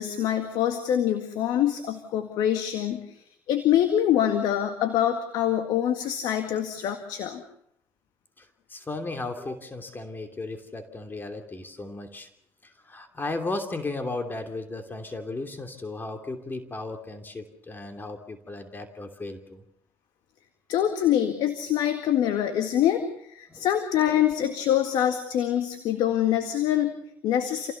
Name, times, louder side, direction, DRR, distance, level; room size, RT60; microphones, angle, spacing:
voice 1, 0.0-7.4 20.7-27.7, left 10 dB, 70° left, 7 dB, 1.9 m, -25 dB
voice 2, 8.4-12.3 12.6-19.6 23.5-23.7, left 2 dB, 25° left, 7 dB, 3.0 m, -35 dB
28.0 x 16.5 x 6.9 m, 0.75 s
supercardioid pair, 65°, 8 cm